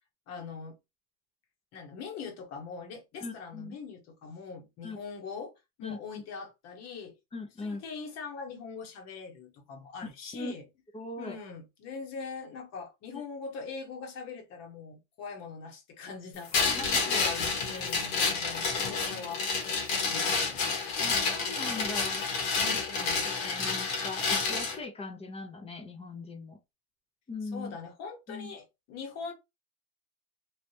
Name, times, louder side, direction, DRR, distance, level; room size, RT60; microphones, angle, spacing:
voice 1, 0.3-0.7 1.7-5.5 5.8-7.2 7.6-10.6 11.2-16.7 17.0-21.1 22.6-23.3 27.5-29.3, left 5 dB, 60° left, 1.3 m, -42 dB
voice 2, 3.2-3.8 4.8-5.0 5.8-6.2 7.3-7.9 10.3-10.5 10.9-11.4 13.1-13.2 16.6-17.2 17.7-17.9 21.0-22.3 23.4-26.6 27.3-27.8 28.3-28.5, left 3 dB, 20° left, 0.7 m, -40 dB
sound 1, 16.5-24.8, left 4 dB, 75° left, 1.6 m, -29 dB
3.3 x 2.4 x 2.8 m
cardioid pair, 130°, 30 cm